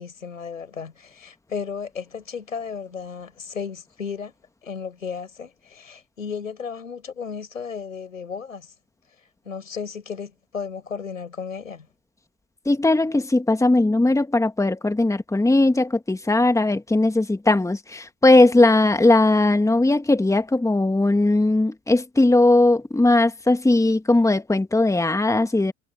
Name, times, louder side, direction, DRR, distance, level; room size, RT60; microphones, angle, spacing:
voice 1, 0.0-4.3 4.6-8.7 9.4-11.9, left 6 dB, 85° left, 5.8 m, -34 dB
voice 2, 12.7-25.7, left 2 dB, 10° left, 2.2 m, -19 dB
figure-of-eight pair, 65°, 39 cm